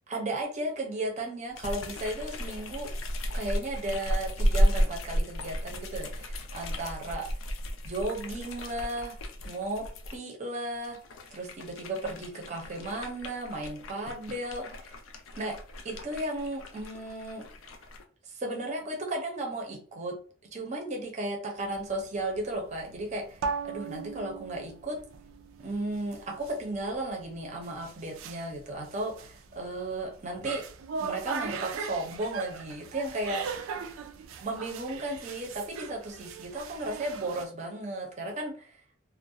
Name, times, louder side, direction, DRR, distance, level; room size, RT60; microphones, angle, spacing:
voice 1, 0.1-2.9 3.3-7.3 7.8-9.2 9.4-9.9 10.1-11.0 11.3-15.0 15.3-15.5 15.8-17.8 18.2-20.1 20.5-25.0 25.6-30.6 31.0-33.7 34.4-38.8, right 1 dB, 35° right, 1 dB, 0.6 m, -35 dB
sound 1, 1.5-10.2 10.8-18.0, equal, 80° left, 0.4 m, -33 dB
sound 2, 21.6-37.5, right 5 dB, 85° right, 0.3 m, -40 dB
2.3 x 2.0 x 2.6 m, 0.42 s
head